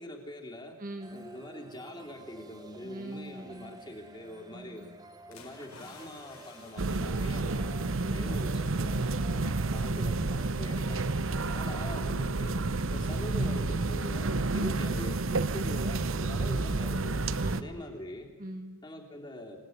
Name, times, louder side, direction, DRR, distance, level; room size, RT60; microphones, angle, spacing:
voice 1, 0.0-0.8 1.1-4.9 5.3-11.1 11.5-12.6 12.9-17.3 17.5-18.3 18.8-19.7, left 1 dB, 20° left, 1 dB, 3.3 m, -44 dB
voice 2, 0.8-1.3 2.8-3.8 4.5-4.9 8.0-8.5 9.8-10.1 11.2-11.9 17.4-17.8 18.4-18.8, right 1 dB, 40° right, 6 dB, 1.9 m, -43 dB
sound 1, 1.0-12.0, right 1 dB, 20° right, 1.4 m, -52 dB
sound 2, 5.3-8.3 8.7-8.9, left 4 dB, 85° left, 5.0 m, -54 dB
sound 3, 6.8-17.6, right 3 dB, 65° right, 0.9 m, -30 dB
26.5 x 18.0 x 9.5 m, 1.3 s
head